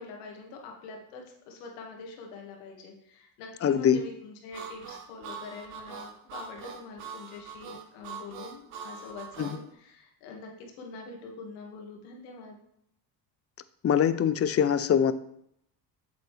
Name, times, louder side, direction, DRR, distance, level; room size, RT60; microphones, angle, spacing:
voice 1, 0.0-10.5 10.8-12.6, left 4 dB, 85° left, 1 dB, 2.0 m, -44 dB
voice 2, 3.6-4.0 9.4-9.6 13.8-15.1, left 8 dB, 30° left, 14 dB, 0.6 m, -23 dB
Harmonica, 4.5-9.6, right 6 dB, 85° right, 1.2 m, -42 dB
8.1 x 7.2 x 3.3 m, 0.72 s
supercardioid pair, 80°, 48 cm